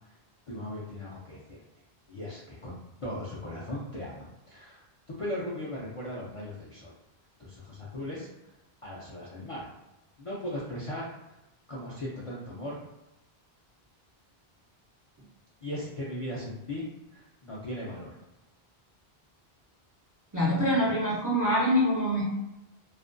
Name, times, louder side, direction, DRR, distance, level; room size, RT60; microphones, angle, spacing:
voice 1, 0.5-1.6 2.1-6.9 7.4-8.3 8.8-9.7 10.2-11.1 11.7-12.8 15.6-16.9 17.1-18.1, left 1 dB, 50° left, -6 dB, 0.4 m, -38 dB
voice 2, 20.3-22.2, equal, 25° right, -7 dB, 0.4 m, -25 dB
2.4 x 2.2 x 2.5 m, 0.94 s
omnidirectional pair, 1.1 m